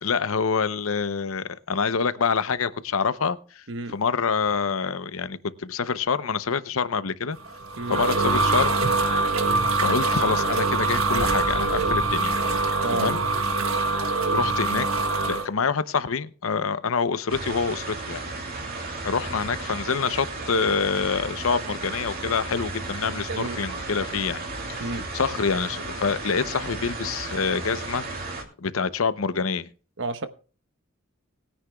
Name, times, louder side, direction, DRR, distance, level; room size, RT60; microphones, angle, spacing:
voice 1, 0.0-3.6 3.9-7.4 7.9-8.7 9.8-12.4 12.9-13.2 14.3-14.9 15.3-18.2 19.0-24.4 24.7-28.0 28.6-29.7, left 5 dB, 75° left, 0.7 m, -26 dB
voice 2, 3.7-4.0 7.8-8.0 12.8-13.1 23.3-23.6 24.8-25.1 30.0-30.3, right 2 dB, 60° right, 1.0 m, -30 dB
sound 1, 7.5-15.4, right 3 dB, 85° right, 1.5 m, -23 dB
sound 2, 17.3-28.4, right 3 dB, 45° right, 2.7 m, -34 dB
20.5 x 9.8 x 2.3 m
head